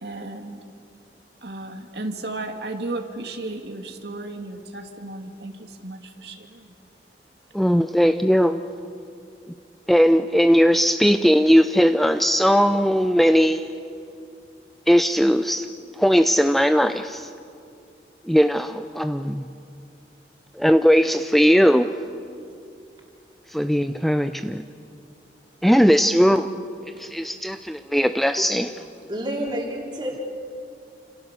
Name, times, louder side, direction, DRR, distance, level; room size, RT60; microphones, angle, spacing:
voice 1, 0.0-0.6 1.4-6.7 26.0-26.6, right 2 dB, 70° right, 4 dB, 2.3 m, -34 dB
voice 2, 7.5-8.6 9.9-13.7 14.9-15.7 16.0-17.3 18.3-19.5 20.6-21.9 23.5-24.6 25.6-26.5 27.0-28.7, equal, ahead, 8 dB, 0.5 m, -18 dB
voice 3, 28.7-30.2, equal, 25° right, -1 dB, 4.0 m, -30 dB
29.5 x 27.5 x 6.7 m, 2.4 s
head